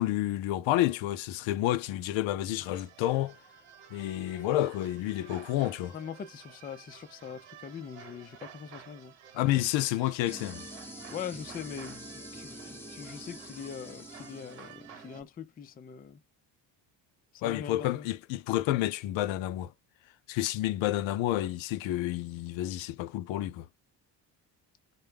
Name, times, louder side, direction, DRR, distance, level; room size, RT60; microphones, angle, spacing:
voice 1, 0.0-3.4 3.9-6.0 9.3-10.6 17.4-19.7 20.3-23.7, left 14 dB, 70° left, 0.6 m, -29 dB
sound 1, 2.6-15.2, right 8 dB, 75° right, 1.2 m, -52 dB
voice 2, 5.9-9.1 11.1-16.2 17.3-18.1, left 7 dB, 20° left, 0.3 m, -42 dB
sound 2, 10.3-15.3, equal, 5° left, 0.8 m, -46 dB
2.2 x 2.1 x 3.3 m
supercardioid pair, 80°, 47 cm